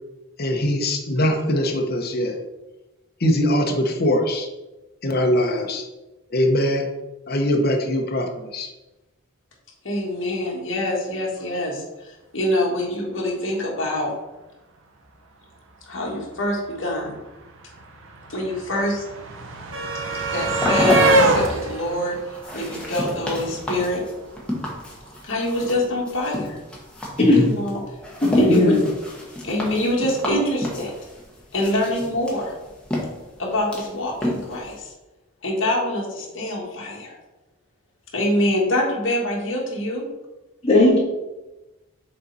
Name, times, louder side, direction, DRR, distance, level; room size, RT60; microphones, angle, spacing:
voice 1, 0.4-2.4 3.2-4.5 5.0-5.8 6.3-6.9 7.3-8.7, left 1 dB, 45° left, 2 dB, 0.9 m, -22 dB
voice 2, 9.8-14.1 15.9-17.2 18.3-19.0 20.3-22.2 22.5-24.0 25.2-26.6 27.6-27.8 28.3-28.7 29.4-30.9 31.5-32.5 33.4-34.9 35.4-37.2 38.1-40.0, left 1 dB, 60° left, -2 dB, 1.8 m, -25 dB
sound 1, 16.9-17.0 17.2-23.4 24.6-24.7 25.0-25.1, right 1 dB, 60° right, 0.8 m, -23 dB
sound 2, 20.1-34.8, equal, 5° left, 1.1 m, -31 dB
voice 3, 27.2-27.5 28.2-28.8 40.6-41.0, left 1 dB, 30° left, -4 dB, 1.9 m, -16 dB
6.5 x 4.2 x 4.1 m, 1.1 s
head